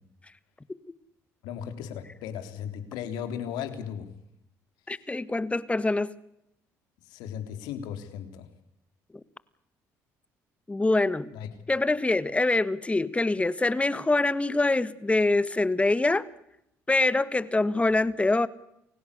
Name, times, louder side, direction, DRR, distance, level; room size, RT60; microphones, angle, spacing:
voice 1, 1.4-4.1 7.1-8.5 11.3-11.5, left 8 dB, 80° left, 8 dB, 3.4 m, -36 dB
voice 2, 4.9-6.1 10.7-11.3 11.7-16.3 16.9-18.5, left 2 dB, 15° left, 15 dB, 1.6 m, -24 dB
29.5 x 16.5 x 8.3 m, 0.80 s
supercardioid pair, 70°, 7 cm